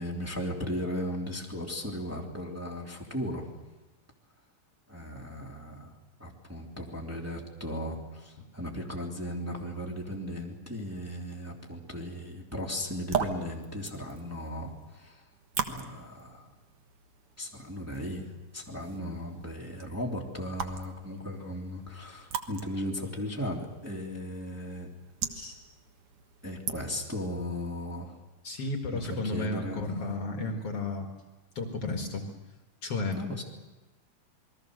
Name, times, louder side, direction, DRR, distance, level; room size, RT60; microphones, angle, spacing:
voice 1, 0.0-3.5 4.9-15.2 15.7-16.5 17.4-18.3 18.5-24.9 26.4-28.1 28.9-29.8 33.1-33.4, equal, 5° right, -2 dB, 2.9 m, -36 dB
sound 1, 12.8-27.2, right 7 dB, 55° right, 2.2 m, -40 dB
voice 2, 28.4-31.1 31.6-32.3 32.8-33.1, left 3 dB, 55° left, 3 dB, 2.6 m, -33 dB
28.0 x 21.5 x 6.6 m, 1.2 s
omnidirectional pair, 3.4 m